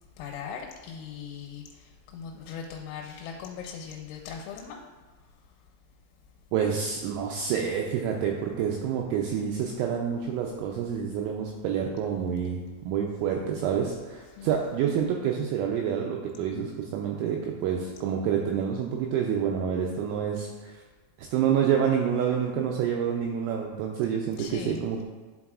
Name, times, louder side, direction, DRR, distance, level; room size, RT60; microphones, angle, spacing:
voice 1, 0.2-4.8 6.8-7.1 7.4-7.6 14.2-14.6 24.4-24.9, left 7 dB, 90° left, 0 dB, 3.4 m, -40 dB
voice 2, 6.5-20.8 21.2-25.0, right 8 dB, 90° right, 0 dB, 2.7 m, -28 dB
11.0 x 4.7 x 2.4 m, 1.4 s
omnidirectional pair, 5.9 m